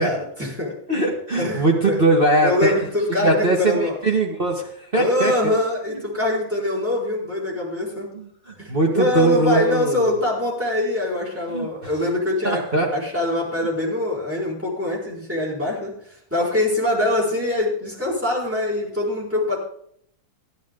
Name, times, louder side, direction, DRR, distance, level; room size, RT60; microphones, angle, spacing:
voice 1, 0.0-0.7 1.4-2.0 2.4-4.0 4.9-8.1 8.6-19.6, left 2 dB, 5° right, -4 dB, 4.5 m, -24 dB
voice 2, 0.9-2.7 3.1-5.5 5.9-6.0 8.1-10.1 11.5-11.7 12.4-12.9, right 2 dB, 30° right, -1 dB, 1.6 m, -21 dB
14.5 x 10.5 x 3.8 m, 0.67 s
omnidirectional pair, 2.3 m